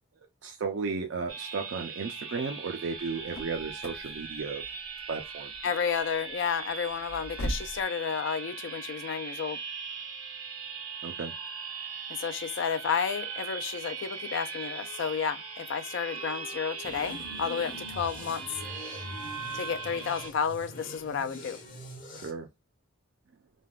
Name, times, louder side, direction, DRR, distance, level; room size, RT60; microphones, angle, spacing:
voice 1, 0.4-4.6 5.1-5.5 11.0-11.3 22.1-22.5, right 4 dB, 60° right, 0.4 m, -34 dB
sound 1, 1.3-20.3, right 5 dB, 75° right, 0.8 m, -40 dB
sound 2, 3.1-7.8, right 1 dB, 80° left, 0.8 m, -40 dB
voice 2, 5.6-9.6 12.1-18.5 19.5-21.6, left 6 dB, 55° left, 0.3 m, -31 dB
sound 3, 16.8-22.3, left 1 dB, 40° left, 0.8 m, -44 dB
3.3 x 2.2 x 2.3 m
head